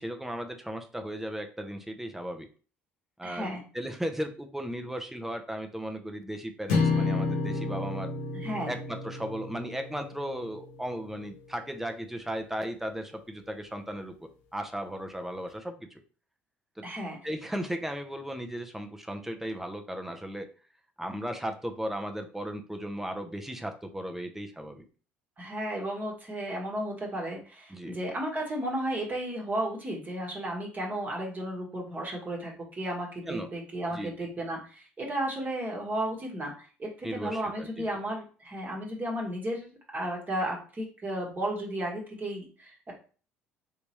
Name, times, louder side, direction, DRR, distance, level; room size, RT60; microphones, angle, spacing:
voice 1, 0.0-2.5 3.2-8.1 8.7-16.0 16.8-16.9 17.2-20.5 21.0-24.8 27.7-28.0 33.2-33.5 33.9-34.1 37.0-37.9, equal, 5° right, 6 dB, 0.6 m, -36 dB
voice 2, 3.2-3.6 8.3-8.7 16.8-17.2 25.4-42.9, right 1 dB, 25° right, -1 dB, 1.2 m, -34 dB
sound 1, 6.7-11.0, left 3 dB, 70° left, 0.8 m, -31 dB
3.4 x 2.9 x 2.9 m, 0.38 s
hypercardioid pair, 60°, 6 cm